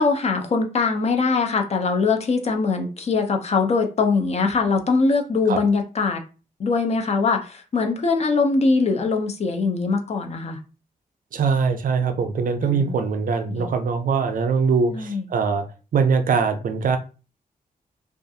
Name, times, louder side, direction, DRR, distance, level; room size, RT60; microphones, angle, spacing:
voice 1, 0.0-6.2 6.6-10.6 12.6-12.9 13.5-13.7 14.9-15.3, left 4 dB, 45° left, 0.5 m, -22 dB
voice 2, 11.3-15.7 15.9-17.0, right 5 dB, 60° right, 0.4 m, -22 dB
2.4 x 2.3 x 2.6 m
wide cardioid pair, 120°, 16 cm